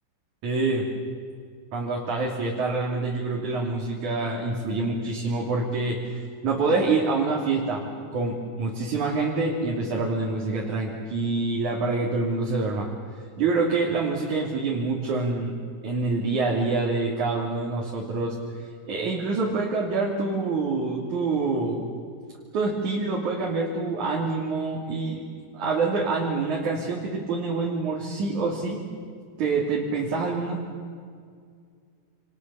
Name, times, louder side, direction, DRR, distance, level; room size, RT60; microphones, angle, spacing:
voice 1, 0.4-0.9 1.7-6.0 6.4-7.9 8.1-12.9 13.4-15.6 15.8-18.4 18.9-21.9 22.5-25.2 25.5-28.8 29.4-30.6, right 3 dB, 55° right, -3 dB, 4.3 m, -26 dB
29.0 x 28.5 x 7.0 m, 2.1 s
omnidirectional pair, 4.1 m